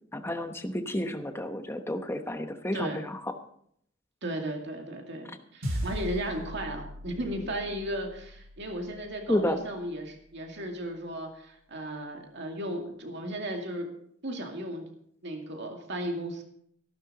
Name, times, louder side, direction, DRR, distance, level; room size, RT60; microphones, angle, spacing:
voice 1, 0.1-3.2 9.3-9.6, left 1 dB, 10° left, 7 dB, 1.0 m, -31 dB
voice 2, 2.7-3.1 4.2-13.9 14.2-14.8 15.2-16.4, right 1 dB, 60° right, 2 dB, 2.3 m, -35 dB
sound 1, 5.6-10.2, equal, 80° right, 3.2 m, -39 dB
14.5 x 12.0 x 4.1 m, 0.67 s
head